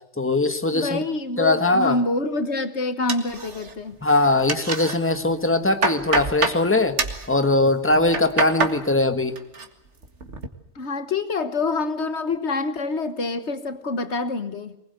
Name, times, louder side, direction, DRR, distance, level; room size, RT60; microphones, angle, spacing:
voice 1, 0.2-1.0 1.4-2.0 4.0-6.9 7.3-9.4, left 2 dB, 10° left, 8 dB, 1.5 m, -20 dB
voice 2, 0.7-4.0 10.7-14.8, left 3 dB, 75° left, 11 dB, 1.6 m, -26 dB
sound 1, 3.1-3.9 4.2-5.0 5.4-6.6 7.0-7.3 7.9-8.8 9.1-9.7 10.0-10.5, right 3 dB, 90° right, 2.2 m, -26 dB
23.5 x 20.0 x 8.0 m, 0.85 s
omnidirectional pair, 1.2 m